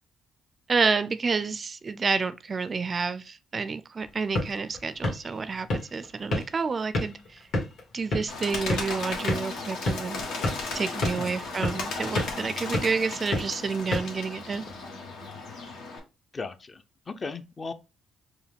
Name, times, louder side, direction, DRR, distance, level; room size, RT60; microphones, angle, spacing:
voice 1, 0.7-7.5 7.9-14.7, right 4 dB, 40° right, 0.3 m, -29 dB
sound 1, 4.0-14.8, left 2 dB, 65° left, 1.6 m, -33 dB
Bird, 8.3-16.0, left 3 dB, 85° left, 1.1 m, -35 dB
voice 2, 16.3-17.7, left 4 dB, 35° left, 0.5 m, -37 dB
4.7 x 2.2 x 3.4 m
cardioid pair, 90°, 0 cm